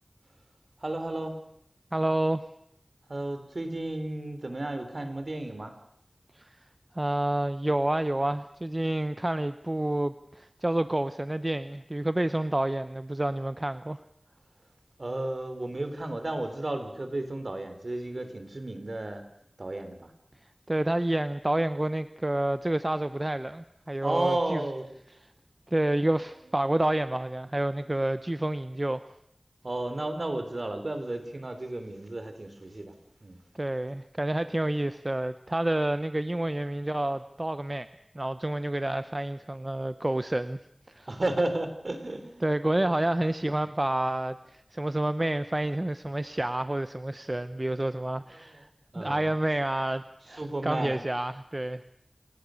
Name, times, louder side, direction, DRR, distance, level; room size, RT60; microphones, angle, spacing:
voice 1, 0.8-1.4 3.1-5.7 15.0-19.2 19.6-20.1 24.0-24.9 29.6-32.9 33.2-33.4 41.1-42.4 42.8-43.0 48.3-48.5 48.9-49.3 50.4-51.0, right 2 dB, 55° right, 8 dB, 3.6 m, -33 dB
voice 2, 1.9-2.4 6.4-6.5 7.0-14.0 20.7-24.6 25.7-29.0 33.6-37.9 38.1-40.6 40.9-41.1 42.4-48.7 49.0-51.8, right 1 dB, 30° right, 12 dB, 0.8 m, -29 dB
28.5 x 18.0 x 6.4 m, 0.74 s
wide cardioid pair, 50°, 0 cm